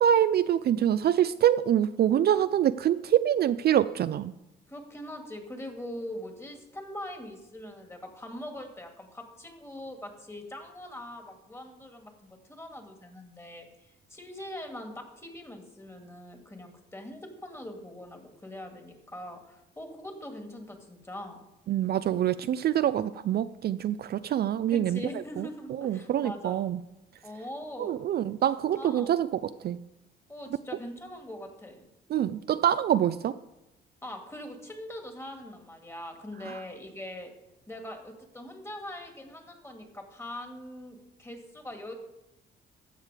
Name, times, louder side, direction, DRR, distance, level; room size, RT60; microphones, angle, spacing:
voice 1, 0.0-4.3 21.7-25.0 25.4-25.5 25.8-26.8 27.8-29.8 32.1-33.3 36.5-36.6, right 10 dB, 55° right, 13 dB, 0.4 m, -25 dB
voice 2, 4.7-21.4 24.7-26.7 27.2-28.0 28.7-29.2 30.3-31.9 34.0-37.3 37.7-41.9, left 1 dB, 15° left, 4 dB, 2.1 m, -42 dB
14.5 x 6.5 x 4.9 m, 0.91 s
cardioid pair, 90°, 20 cm